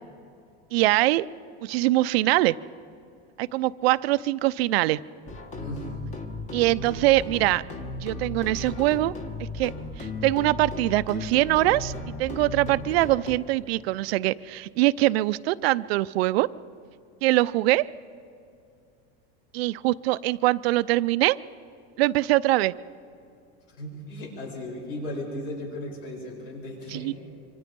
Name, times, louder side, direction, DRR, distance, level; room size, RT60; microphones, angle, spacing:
voice 1, 0.7-1.3 1.6-2.6 3.4-5.0 6.5-7.6 8.0-9.1 9.5-9.7 10.0-11.9 12.2-16.5 17.2-17.9 19.5-21.4 22.0-22.7 26.9-27.1, right 18 dB, 85° right, 15 dB, 0.6 m, -23 dB
sound 1, 5.3-13.4, left 2 dB, 25° left, 1.5 m, -36 dB
voice 2, 5.5-5.9 23.7-27.1, left 1 dB, 65° left, -1 dB, 7.7 m, -36 dB
26.0 x 25.0 x 5.4 m, 2.5 s
supercardioid pair, 160°, 30 cm